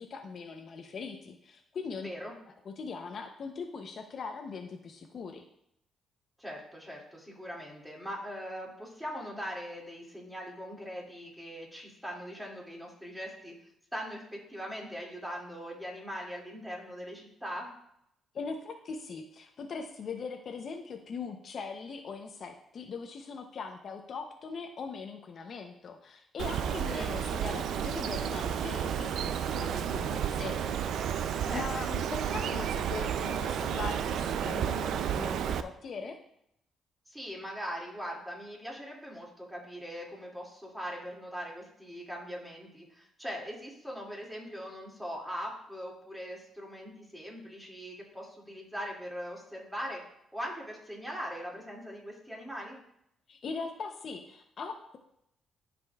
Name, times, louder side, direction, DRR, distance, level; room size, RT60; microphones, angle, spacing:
voice 1, 0.0-2.1 2.6-5.5 18.3-31.2 31.5-36.2 53.3-55.0, left 5 dB, 55° left, 5 dB, 0.7 m, -41 dB
voice 2, 2.0-2.4 6.4-13.5 13.9-17.7 26.6-27.2 31.4-31.8 37.1-50.0 50.3-52.8, equal, 5° right, -2 dB, 2.4 m, -41 dB
Bird, 26.4-35.6, right 9 dB, 75° right, 0.4 m, -32 dB
12.5 x 5.1 x 2.4 m, 0.75 s
cardioid pair, 90°, 0 cm